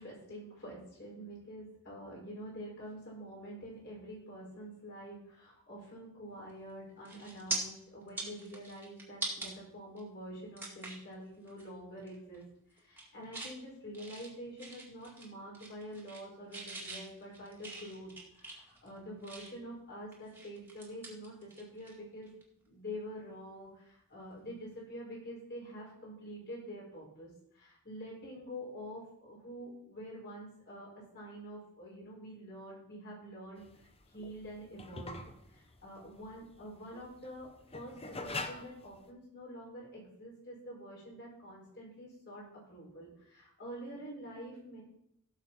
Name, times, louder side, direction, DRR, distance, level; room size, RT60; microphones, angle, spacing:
voice 1, 0.0-12.5 12.7-22.3 22.7-33.6 34.1-35.2 35.5-42.4 42.7-44.8, equal, 50° left, -4 dB, 5.9 m, -47 dB
sound 1, 6.5-6.7 7.1-7.6 8.0-9.5 10.0-10.1 10.6-11.1 11.5-11.7 12.0-12.4 12.8-13.6 13.9-15.3 15.5-16.3 16.5-19.7 20.1-21.9 22.2-22.4 24.3-24.5, right 3 dB, 10° right, 2.1 m, -43 dB
sound 2, 33.6-39.1, left 3 dB, 25° left, 0.8 m, -44 dB
17.0 x 6.9 x 4.4 m, 0.73 s
head